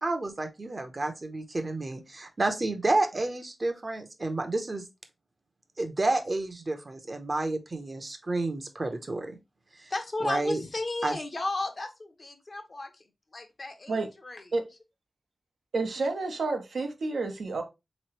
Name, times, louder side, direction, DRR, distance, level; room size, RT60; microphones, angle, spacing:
voice 1, 0.0-4.8 5.8-9.4 9.8-9.9 10.2-10.6 11.0-11.1, right 2 dB, 40° right, 0.7 m, -30 dB
voice 2, 9.9-13.0 13.3-14.5, left 2 dB, 45° left, 0.8 m, -34 dB
voice 3, 15.7-17.6, right 3 dB, 85° right, 0.8 m, -30 dB
3.7 x 3.1 x 3.0 m
wide cardioid pair, 80°, 0 cm